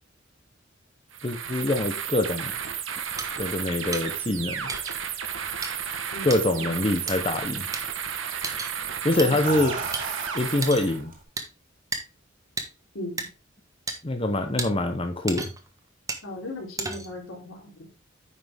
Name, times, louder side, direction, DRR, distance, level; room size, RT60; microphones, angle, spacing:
sound 1, 1.1-11.0, right 8 dB, 70° right, 1.2 m, -33 dB
voice 1, 1.2-2.5 3.4-4.7 6.2-7.7 9.0-9.7 10.3-11.1 14.0-15.5, left 2 dB, 30° left, 0.9 m, -25 dB
sound 2, 3.2-3.3 3.9-4.0 4.7-4.9 5.6-5.7 6.3-6.4 7.1-7.2 7.7-7.8 8.4-8.7 9.2-9.3 9.9-10.0 10.6-10.9 11.4-11.5 11.9-12.0 12.6-12.7 13.2-13.3 13.9-14.0 14.6-14.7 15.3-15.7 16.1-16.2 16.8-17.2, right 3 dB, 15° right, 1.3 m, -32 dB
sound 3, 3.5-6.2 6.6-7.0 8.3-8.5 9.1-11.2, right 2 dB, 45° right, 2.5 m, -38 dB
voice 2, 6.1-7.0 9.1-9.3 12.9-13.3 16.2-17.9, left 1 dB, 85° left, 3.5 m, -38 dB
9.5 x 5.9 x 3.5 m
head